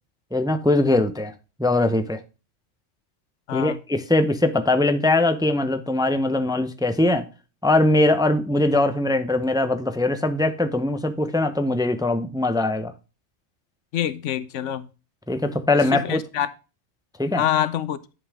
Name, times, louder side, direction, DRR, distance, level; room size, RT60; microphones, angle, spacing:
voice 1, 0.3-1.3 1.6-2.2 3.5-7.3 7.6-12.9 15.3-16.2 17.2-17.4, left 2 dB, 5° right, 0.6 m, -21 dB
voice 2, 13.9-14.9 15.9-16.5 17.4-18.0, left 11 dB, 85° left, 1.1 m, -25 dB
10.0 x 5.4 x 3.5 m
omnidirectional pair, 1.2 m